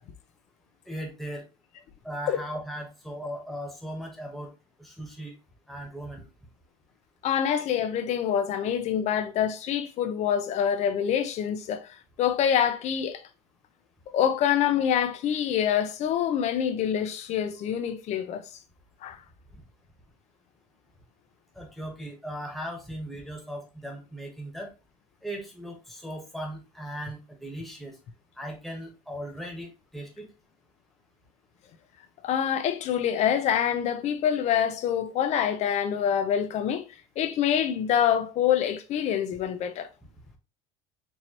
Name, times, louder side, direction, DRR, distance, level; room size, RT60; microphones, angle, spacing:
voice 1, 0.9-1.4 2.0-4.5 4.8-5.3 5.7-6.3 19.5-19.6 21.5-24.7 25.2-28.0 28.4-30.3, equal, ahead, 1.3 m, -38 dB
voice 2, 7.2-11.9 12.2-13.2 14.1-18.5 19.0-19.2 32.2-36.8 37.2-39.9, left 9 dB, 50° left, 0.7 m, -26 dB
4.6 x 2.8 x 2.9 m
cardioid pair, 125°, 15 cm